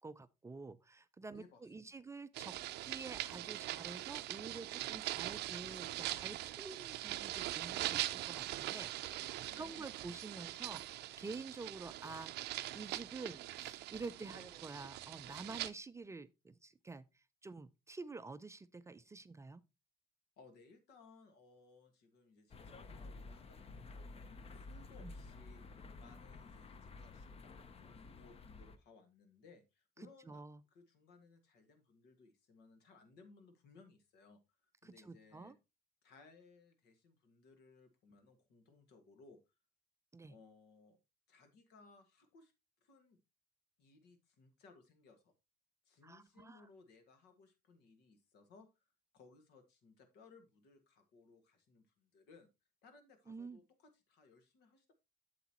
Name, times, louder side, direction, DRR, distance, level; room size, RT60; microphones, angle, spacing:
voice 1, 0.0-2.6 2.8-9.3 9.6-19.6 25.0-25.1 30.3-30.6 34.8-35.5 40.1-40.3 46.0-46.7 53.3-53.6, right 3 dB, 15° right, 0.4 m, -49 dB
voice 2, 1.3-1.7 2.0-2.1 9.4-9.8 14.2-14.6 20.4-30.4 30.7-35.5 36.0-39.4 40.3-41.0 41.3-42.5 42.8-43.2 43.8-45.3 45.8-48.7 49.1-52.5 52.8-54.9, left 4 dB, 80° left, 1.8 m, -63 dB
sound 1, 2.3-15.7, right 16 dB, 80° right, 0.5 m, -42 dB
sound 2, 22.5-28.8, left 3 dB, 35° left, 0.7 m, -52 dB
7.9 x 7.3 x 2.9 m
cardioid pair, 110°, 17 cm